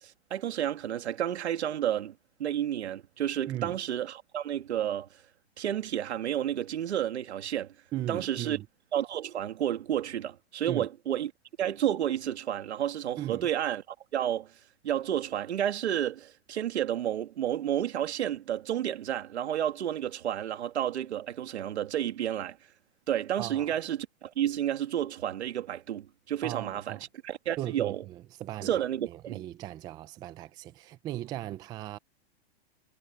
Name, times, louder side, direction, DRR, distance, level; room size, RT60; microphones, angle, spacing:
voice 1, 0.0-2.1 2.4-5.1 5.6-7.7 8.1-8.6 8.9-11.3 11.6-13.8 14.1-14.5 14.8-22.6 23.1-27.0 27.2-28.0 28.6-29.4, right 10 dB, 85° right, 2.4 m, -31 dB
voice 2, 3.5-3.8 7.9-8.7 10.7-10.9 13.2-13.5 23.4-23.7 26.4-27.1 27.6-32.0, right 14 dB, 15° right, 0.4 m, -38 dB
hypercardioid pair, 155°, 32 cm